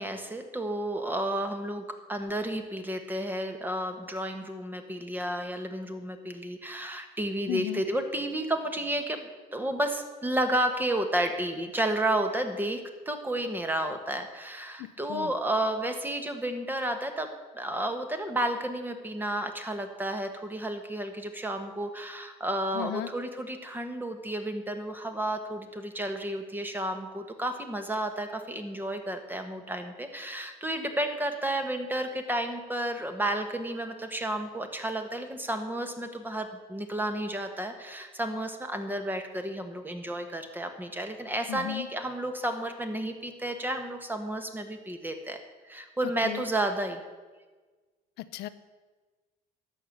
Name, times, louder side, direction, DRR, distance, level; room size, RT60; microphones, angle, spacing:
voice 1, 0.0-17.3 17.5-45.4 45.6-47.0, right 1 dB, 10° right, 7 dB, 1.5 m, -32 dB
voice 2, 7.5-7.8 14.8-15.3 22.7-23.1 41.5-41.9 46.2-46.5 48.2-48.5, left 15 dB, 80° left, 13 dB, 0.6 m, -35 dB
11.5 x 7.1 x 7.9 m, 1.3 s
cardioid pair, 110°, 17 cm